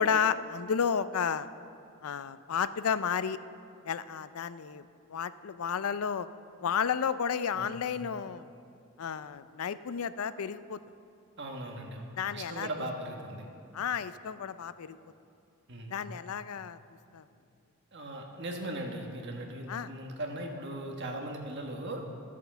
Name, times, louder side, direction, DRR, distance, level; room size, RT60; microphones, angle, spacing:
voice 1, 0.0-1.5 2.0-3.4 3.8-4.8 5.1-6.3 6.6-8.5 9.0-10.8 12.2-12.7 13.7-15.0 15.9-16.8 17.1-17.2 19.7-19.9, left 7 dB, 80° left, 14 dB, 0.4 m, -32 dB
voice 2, 11.4-13.5 15.7-16.0 17.9-22.0, right 1 dB, 55° right, 1 dB, 1.5 m, -38 dB
13.5 x 8.2 x 6.9 m, 2.5 s
head